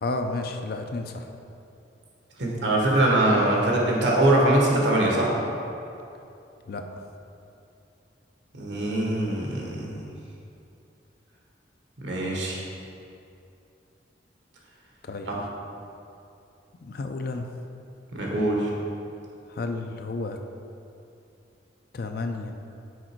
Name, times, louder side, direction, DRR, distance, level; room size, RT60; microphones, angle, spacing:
voice 1, 0.0-1.2 6.7-6.8 15.1-15.3 16.8-17.4 19.5-20.4 21.9-22.5, left 3 dB, 55° left, 5 dB, 0.5 m, -31 dB
voice 2, 2.4-5.3 8.5-10.0 12.0-12.6 15.3-15.4 18.1-18.7, right 1 dB, 80° right, -2 dB, 1.4 m, -23 dB
6.4 x 5.0 x 4.5 m, 2.6 s
head